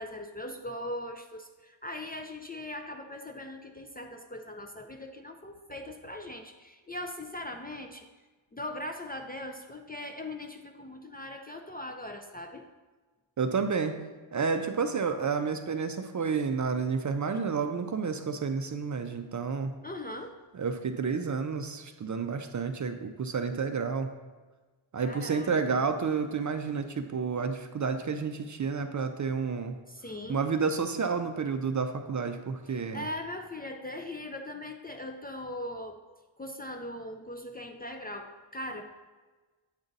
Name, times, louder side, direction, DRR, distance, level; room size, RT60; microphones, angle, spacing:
voice 1, 0.0-8.1 8.5-12.6 19.8-20.4 25.0-25.5 29.9-30.4 32.7-36.0 36.4-38.8, left 1 dB, 20° left, 4 dB, 0.4 m, -40 dB
voice 2, 13.4-13.9 14.3-19.7 20.5-24.1 24.9-29.7 30.3-33.1, right 5 dB, 40° right, 7 dB, 0.4 m, -30 dB
8.1 x 3.8 x 3.9 m, 1.3 s
wide cardioid pair, 90°, 49 cm